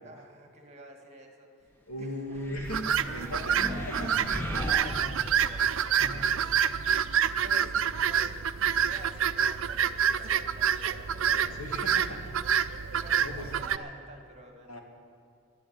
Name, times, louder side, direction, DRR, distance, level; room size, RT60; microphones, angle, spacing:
voice 1, 0.0-2.5 3.1-3.9 4.3-6.9 7.3-11.7 13.0-14.8, right 1 dB, 30° right, 3 dB, 1.6 m, -50 dB
voice 2, 1.9-3.6 3.9-4.3 4.6-5.2 6.0-6.3 7.0-7.7 11.2-12.4 12.9-13.6 14.7-14.8, left 1 dB, 85° left, 1 dB, 2.2 m, -39 dB
sound 1, 2.3-5.7, equal, 10° left, 0.9 m, -37 dB
sound 2, 2.7-13.8, right 8 dB, 65° right, 0.5 m, -27 dB
12.0 x 11.0 x 9.0 m, 2.3 s
head